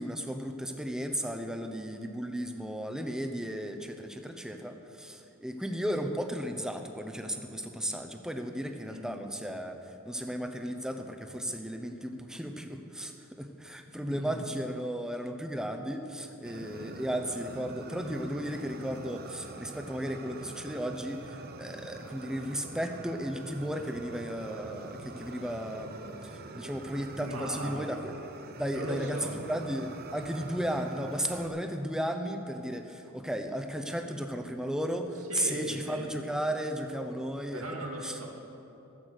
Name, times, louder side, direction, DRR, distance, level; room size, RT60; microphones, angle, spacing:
voice 1, 0.0-28.1 28.6-37.6 38.0-38.2, equal, 5° right, 5 dB, 0.7 m, -35 dB
voice 2, 13.9-14.4 27.2-27.9 28.7-29.4 35.3-36.1 37.5-38.3, right 1 dB, 85° right, 0 dB, 2.0 m, -38 dB
Fire, 16.5-31.5, right 3 dB, 45° right, 0.7 m, -45 dB
14.5 x 8.3 x 6.5 m, 2.9 s
head